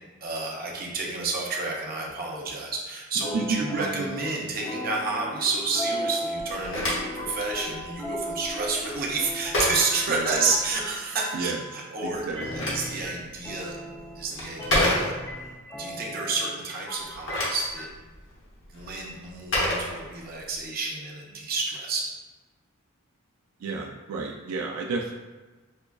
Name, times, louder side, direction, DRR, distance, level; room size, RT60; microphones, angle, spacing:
voice 1, 0.2-12.4 12.7-13.8 14.2-15.1 15.8-17.9 18.7-22.1, right 3 dB, 45° right, -2 dB, 0.6 m, -30 dB
voice 2, 3.1-4.1 10.1-10.5 11.3-11.6 12.0-12.8 23.6-25.1, right 4 dB, 80° right, 1 dB, 0.3 m, -31 dB
sound 1, 3.2-4.3 4.6-11.8 12.3-17.9, equal, 15° left, 0.5 m, -37 dB
Telephone, 6.4-10.9 12.1-15.5 17.0-20.6, left 1 dB, 60° left, 1.0 m, -31 dB
4.9 x 2.3 x 2.2 m, 1.3 s
head